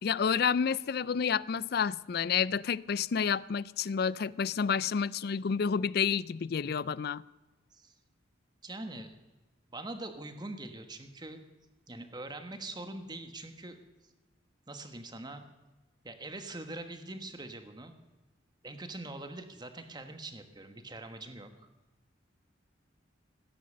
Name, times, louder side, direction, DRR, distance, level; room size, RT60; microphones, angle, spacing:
voice 1, 0.0-7.2, left 6 dB, 55° left, 0.4 m, -29 dB
voice 2, 8.6-9.1 9.7-11.4 11.9-13.8 14.7-15.5 16.0-18.0 18.6-21.5, right 2 dB, 20° right, 1.4 m, -43 dB
18.5 x 10.5 x 6.7 m
head